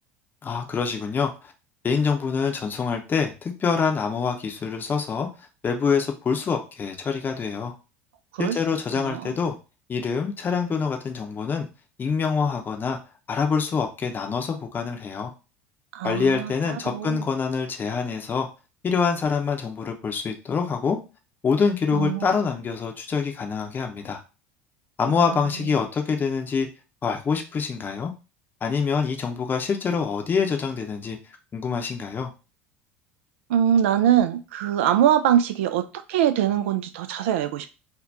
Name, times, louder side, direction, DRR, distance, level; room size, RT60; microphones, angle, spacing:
voice 1, 0.4-1.5 1.8-7.7 8.4-9.6 9.9-11.7 12.0-13.0 13.3-15.3 16.0-18.5 18.8-21.0 21.4-24.2 25.0-26.7 27.0-28.1 28.6-31.2 31.5-32.3, left 5 dB, 25° left, 0.7 m, -25 dB
voice 2, 9.0-9.3 15.9-17.3 21.9-22.3 25.1-25.4 33.5-37.7, right 10 dB, 65° right, 0.3 m, -23 dB
2.6 x 2.2 x 3.4 m
figure-of-eight pair, 70°, 7 cm